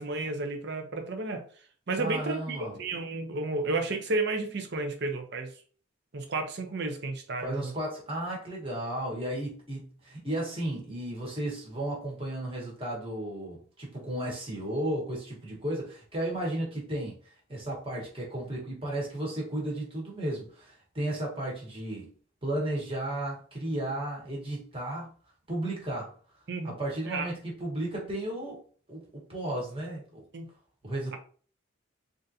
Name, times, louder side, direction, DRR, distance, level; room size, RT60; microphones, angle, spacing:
voice 1, 0.0-1.4 1.9-5.5 6.1-7.7 26.5-26.7 27.1-27.3 30.3-30.5, right 3 dB, 55° right, 4 dB, 0.6 m, -32 dB
voice 2, 2.0-2.7 7.4-22.1 22.4-25.1 25.5-26.1 26.6-28.6 28.9-29.0 29.3-30.2 30.8-31.2, right 1 dB, 25° right, -3 dB, 1.2 m, -34 dB
3.7 x 2.6 x 2.7 m, 0.43 s
head